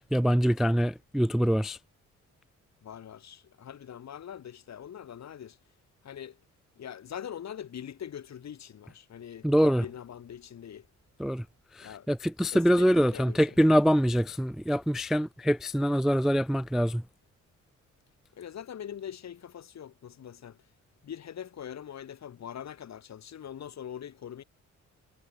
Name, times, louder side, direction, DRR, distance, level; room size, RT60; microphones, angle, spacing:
voice 1, 0.1-1.8 9.4-9.8 11.2-11.4 11.8-17.0, equal, ahead, 0.3 m, -24 dB
voice 2, 2.8-5.6 6.0-6.4 6.8-10.9 11.8-12.1 12.5-13.6 18.3-20.6 21.0-24.4, left 9 dB, 60° left, 2.5 m, -43 dB
cardioid pair, 80°, 30 cm